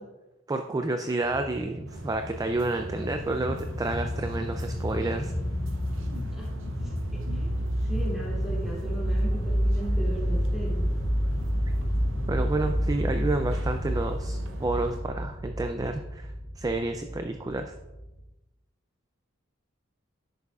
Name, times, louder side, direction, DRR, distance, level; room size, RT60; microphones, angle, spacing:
voice 1, 0.5-5.3 12.3-17.7, right 2 dB, 20° right, 6 dB, 0.3 m, -30 dB
sound 1, 1.2-18.2, equal, 75° left, 2.9 m, -30 dB
sound 2, 1.9-15.0, right 2 dB, 65° right, 0.7 m, -46 dB
voice 2, 6.8-7.5 7.8-10.8, right 1 dB, ahead, -6 dB, 2.6 m, -38 dB
10.5 x 6.6 x 2.4 m, 1.0 s
head